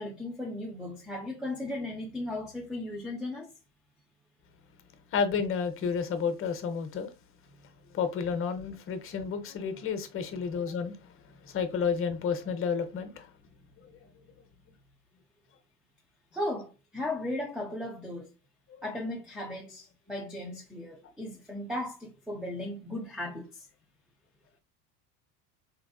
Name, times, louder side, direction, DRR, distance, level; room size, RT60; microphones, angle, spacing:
voice 1, 0.0-3.5 16.3-18.3 18.8-23.7, left 1 dB, ahead, 0.3 m, -36 dB
voice 2, 5.1-7.1 7.9-11.1 11.4-13.3, left 6 dB, 30° left, 0.7 m, -31 dB
3.4 x 3.2 x 2.2 m
hypercardioid pair, 80°, 46 cm